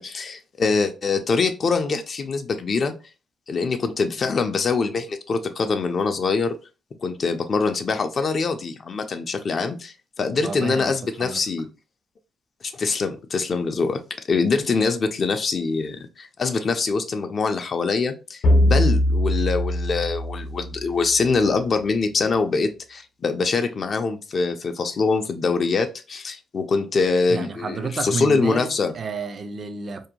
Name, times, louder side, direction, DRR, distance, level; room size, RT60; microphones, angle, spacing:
voice 1, 0.0-2.9 3.5-6.6 7.0-11.7 12.6-14.0 14.3-28.9, left 4 dB, 45° left, 0.3 m, -24 dB
voice 2, 10.4-11.4 27.3-30.1, right 5 dB, 45° right, 0.3 m, -31 dB
sound 1, 18.4-21.0, left 1 dB, 75° left, 0.7 m, -21 dB
2.6 x 2.1 x 2.8 m
cardioid pair, 90°, 0 cm